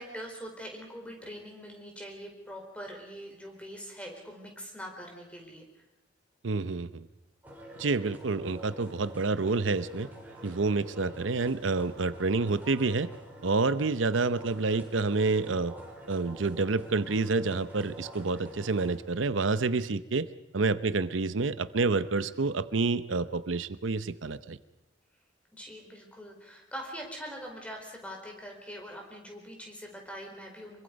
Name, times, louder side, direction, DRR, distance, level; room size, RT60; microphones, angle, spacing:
voice 1, 0.0-5.7 25.5-30.8, equal, 5° left, 1 dB, 4.4 m, -43 dB
voice 2, 6.4-7.1 7.8-10.1 10.4-13.1 13.4-15.7 16.1-20.3 20.5-24.6, right 3 dB, 85° right, 14 dB, 0.8 m, -28 dB
sound 1, 7.4-19.0, equal, 10° right, 4.8 m, -47 dB
25.0 x 23.5 x 5.3 m, 0.93 s
head